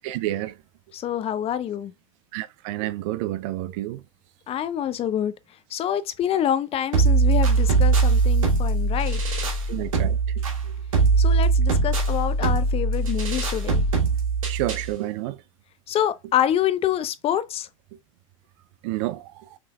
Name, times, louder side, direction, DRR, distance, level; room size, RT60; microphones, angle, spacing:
voice 1, 0.0-0.6 2.3-4.0 9.7-10.2 14.5-15.4 18.8-19.6, right 15 dB, 60° right, 0.5 m, -29 dB
voice 2, 0.9-1.9 4.5-5.3 5.7-9.4 11.2-13.8 15.9-17.7, left 10 dB, 35° left, 0.6 m, -26 dB
sound 1, 6.9-14.9, right 4 dB, 85° right, 1.5 m, -21 dB
5.9 x 3.3 x 2.2 m
hypercardioid pair, 95°, 17 cm